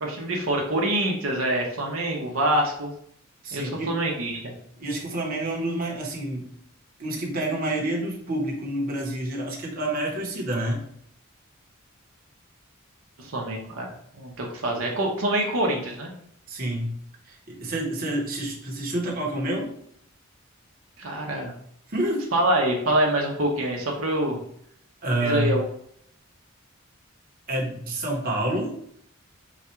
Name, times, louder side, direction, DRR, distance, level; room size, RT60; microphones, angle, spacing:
voice 1, 0.0-2.9 3.5-4.5 13.2-16.1 21.0-21.5 22.3-24.4 25.2-25.6, right 1 dB, 85° right, 0 dB, 0.9 m, -25 dB
voice 2, 3.4-3.9 4.8-6.5 7.0-10.8 16.5-16.9 17.2-19.7 21.9-22.2 25.0-25.6 27.5-28.7, right 1 dB, 45° right, -2 dB, 1.0 m, -28 dB
4.1 x 2.4 x 4.3 m, 0.68 s
head